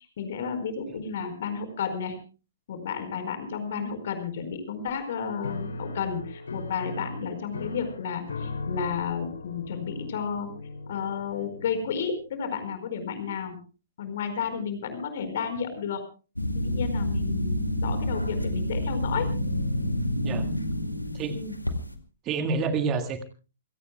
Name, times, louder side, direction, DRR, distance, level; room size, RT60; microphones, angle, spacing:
voice 1, 0.2-2.2 2.7-10.5 10.9-13.6 14.0-16.0 16.6-19.3 21.3-21.5, left 6 dB, 50° left, 9 dB, 4.7 m, -32 dB
Piano, 5.4-12.2, left 3 dB, 65° left, 2.6 m, -38 dB
piano sfx, 16.4-21.9, left 1 dB, 85° left, 2.1 m, -28 dB
voice 2, 22.3-23.2, right 4 dB, 25° right, 8 dB, 1.8 m, -28 dB
28.5 x 17.5 x 2.2 m, 0.34 s
figure-of-eight pair, 120°, 0 cm